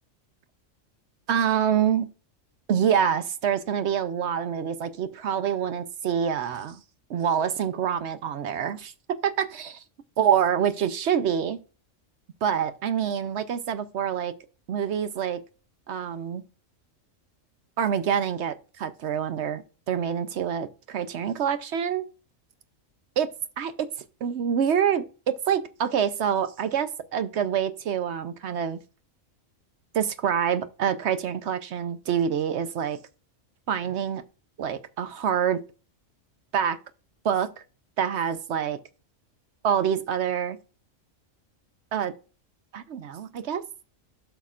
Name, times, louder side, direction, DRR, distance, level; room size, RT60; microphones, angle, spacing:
voice 1, 1.3-2.1 2.7-6.8 7.1-9.8 10.2-11.6 12.4-14.3 14.7-15.4 15.9-16.4 17.8-22.0 23.2-23.3 23.6-23.9 24.2-28.8 29.9-33.0 33.7-34.2 34.6-35.6 36.5-36.8 37.2-37.5 38.0-38.8 39.6-40.6 41.9-42.1 42.7-43.6, right 8 dB, 65° right, 0.9 m, -26 dB
12.5 x 5.8 x 2.4 m
omnidirectional pair, 1.3 m